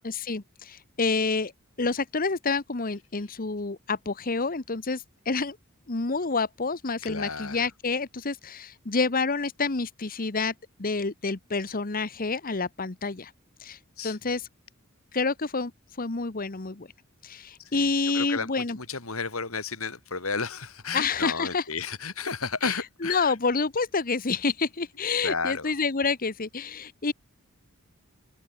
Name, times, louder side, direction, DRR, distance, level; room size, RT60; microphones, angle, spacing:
voice 1, 0.0-1.5 1.8-5.6 5.9-10.5 10.8-13.3 13.6-14.5 15.1-15.7 16.0-16.9 17.2-18.8 20.9-21.6 22.6-27.1, left 4 dB, 40° left, 1.1 m, -28 dB
voice 2, 7.0-7.6 14.0-14.2 17.6-23.3 25.2-25.7, left 4 dB, 85° left, 3.7 m, -33 dB
head